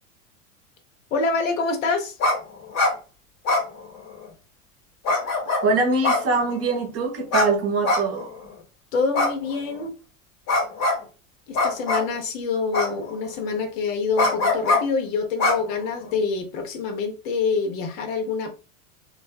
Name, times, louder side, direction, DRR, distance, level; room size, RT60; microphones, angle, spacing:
voice 1, 1.1-2.1 8.9-9.9 11.5-18.6, left 4 dB, 80° left, 0.9 m, -26 dB
sound 1, 2.2-2.4 2.6-2.9 3.4-4.3 5.0-5.6 6.0-6.7 7.3-7.5 7.8-8.4 9.1-9.8 10.5-11.0 11.5-12.2 12.7-13.3 14.2-14.8 15.4-16.1, left 2 dB, 55° left, 1.1 m, -22 dB
voice 2, 5.6-8.3, right 3 dB, 35° right, 0.8 m, -23 dB
2.5 x 2.1 x 2.4 m
hypercardioid pair, 100°, 39 cm